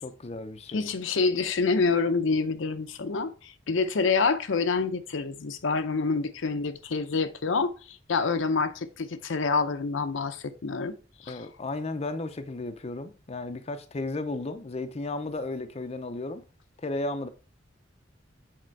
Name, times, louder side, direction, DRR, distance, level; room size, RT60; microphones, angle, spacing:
voice 1, 0.0-0.9 11.3-16.4 16.8-17.3, left 2 dB, 30° left, 0.5 m, -34 dB
voice 2, 0.7-10.9 11.2-11.4, left 4 dB, 75° left, 0.6 m, -27 dB
7.6 x 4.3 x 4.5 m
head